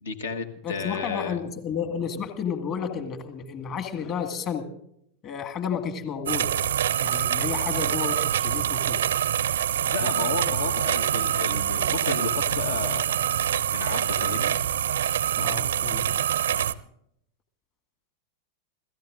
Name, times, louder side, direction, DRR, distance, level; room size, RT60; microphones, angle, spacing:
voice 1, 0.0-1.4 9.8-13.2 13.7-14.6, left 4 dB, 65° left, 7 dB, 1.4 m, -32 dB
voice 2, 0.6-4.7 5.2-6.5 7.0-9.0 15.4-16.7, left 7 dB, 35° left, 6 dB, 2.0 m, -32 dB
sound 1, 6.3-16.7, right 10 dB, 65° right, 0.6 m, -25 dB
28.5 x 17.0 x 2.6 m, 0.73 s
figure-of-eight pair, 90°, 0 cm